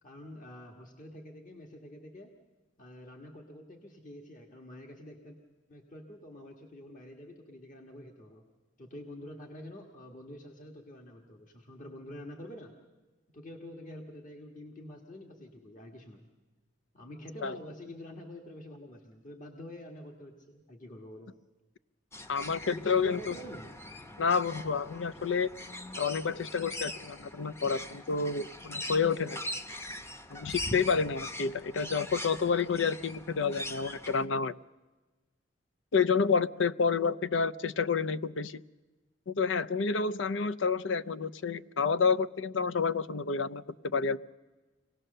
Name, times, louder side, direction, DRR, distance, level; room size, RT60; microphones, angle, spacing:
voice 1, 0.0-2.3 2.8-5.4 5.7-8.4 8.8-12.7 13.3-16.3 16.9-21.3 22.7-23.7, left 1 dB, 45° left, 2 dB, 1.6 m, -47 dB
sound 1, 22.1-34.3, left 1 dB, 15° left, 0.8 m, -42 dB
voice 2, 22.3-23.3 24.2-25.5 26.0-29.4 30.3-34.5 35.9-38.6 39.3-44.2, left 5 dB, 80° left, 16 dB, 0.6 m, -29 dB
25.0 x 18.0 x 6.7 m, 1.2 s
head